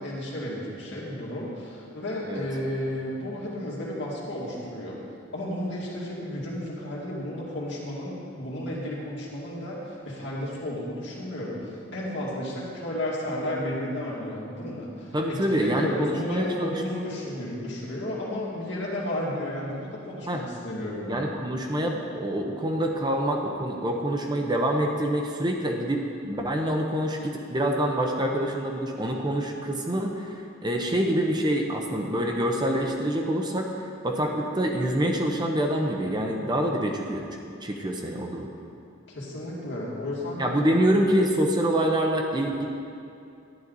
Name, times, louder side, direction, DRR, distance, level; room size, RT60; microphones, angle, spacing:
voice 1, 0.0-5.0 5.3-21.2 39.1-40.7, left 1 dB, 60° left, -5 dB, 2.3 m, -33 dB
voice 2, 15.1-16.7 20.3-20.4 21.1-30.3 30.6-33.7 34.0-37.3 37.6-38.5 40.4-42.7, right 1 dB, 20° right, 1 dB, 0.7 m, -26 dB
11.0 x 9.9 x 4.0 m, 2.6 s
head